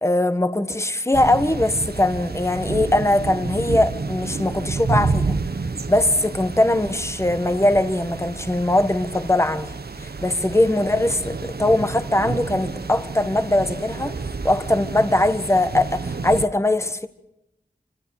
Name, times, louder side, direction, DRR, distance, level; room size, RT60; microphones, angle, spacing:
voice 1, 0.0-5.4 5.9-9.7 10.0-14.1 14.4-17.1, left 1 dB, 15° left, 1.5 m, -21 dB
sound 1, 1.1-16.5, right 4 dB, 75° right, 1.3 m, -29 dB
27.0 x 26.0 x 4.9 m
wide cardioid pair, 70°, 16 cm